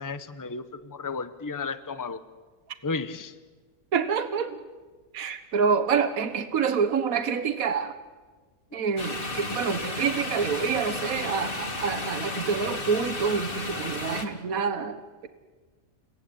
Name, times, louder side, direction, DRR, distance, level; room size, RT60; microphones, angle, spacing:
voice 1, 0.0-2.2 2.8-3.3, left 4 dB, 15° left, 11 dB, 1.0 m, -33 dB
voice 2, 3.9-4.6 5.1-7.9 8.7-15.3, right 6 dB, 70° right, 10 dB, 1.7 m, -27 dB
sound 1, 9.0-14.3, left 2 dB, 35° left, 2.6 m, -33 dB
30.0 x 18.5 x 9.8 m, 1.4 s
omnidirectional pair, 1.5 m